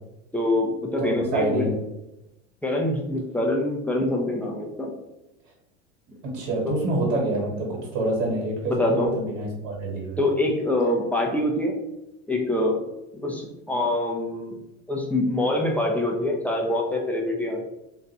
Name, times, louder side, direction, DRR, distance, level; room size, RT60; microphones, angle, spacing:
voice 1, 0.3-1.7 2.6-4.9 6.6-6.7 8.8-9.1 10.2-11.7 12.3-12.7 13.2-14.6 14.9-17.6, left 1 dB, 5° left, -1 dB, 0.3 m, -25 dB
voice 2, 1.0-1.7 6.2-10.2, right 2 dB, 80° right, -2 dB, 1.3 m, -27 dB
2.5 x 2.1 x 4.0 m, 0.92 s
supercardioid pair, 120°, 33 cm